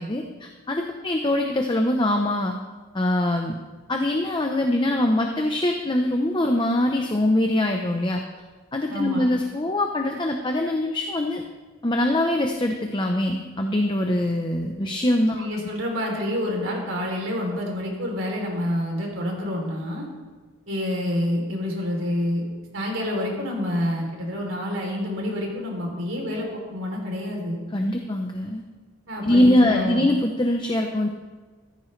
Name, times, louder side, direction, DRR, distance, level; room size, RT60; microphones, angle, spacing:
voice 1, 0.0-2.6 2.9-3.6 3.9-8.2 8.7-11.4 11.8-15.5 27.7-28.6 29.2-31.1, left 1 dB, 20° left, 3 dB, 0.8 m, -23 dB
voice 2, 8.9-9.2 15.3-20.1 20.7-22.4 22.7-27.6 29.1-30.0, left 1 dB, 70° right, 0 dB, 3.3 m, -28 dB
15.0 x 14.0 x 3.3 m, 1.4 s
head